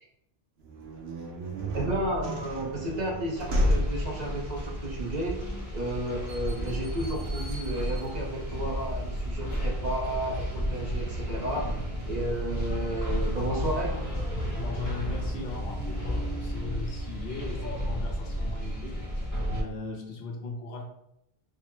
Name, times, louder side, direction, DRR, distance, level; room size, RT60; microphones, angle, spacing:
sound 1, 0.6-9.3, equal, 75° right, 1.0 m, -33 dB
voice 1, 1.7-5.4 5.7-11.7 12.1-14.0, right 1 dB, 45° right, -2 dB, 0.8 m, -32 dB
sound 2, 3.3-19.6, equal, 20° left, 1.0 m, -32 dB
voice 2, 14.5-19.0 19.5-20.9, left 2 dB, 70° left, 1 dB, 0.9 m, -38 dB
3.5 x 2.1 x 4.3 m, 0.81 s
omnidirectional pair, 1.1 m